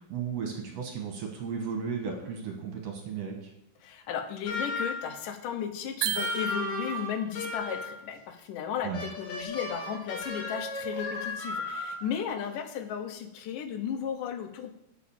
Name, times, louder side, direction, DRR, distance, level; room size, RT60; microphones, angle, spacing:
voice 1, 0.1-3.5 8.8-9.0, right 6 dB, 60° right, 3 dB, 2.0 m, -35 dB
voice 2, 3.8-14.7, left 8 dB, 80° left, 7 dB, 2.4 m, -35 dB
sound 1, 4.5-5.2 6.1-8.0 8.9-12.1, left 2 dB, 45° left, 2.7 m, -35 dB
sound 2, 6.0-7.2, right 10 dB, 80° right, 2.1 m, -33 dB
9.8 x 5.0 x 7.1 m, 0.80 s
omnidirectional pair, 3.8 m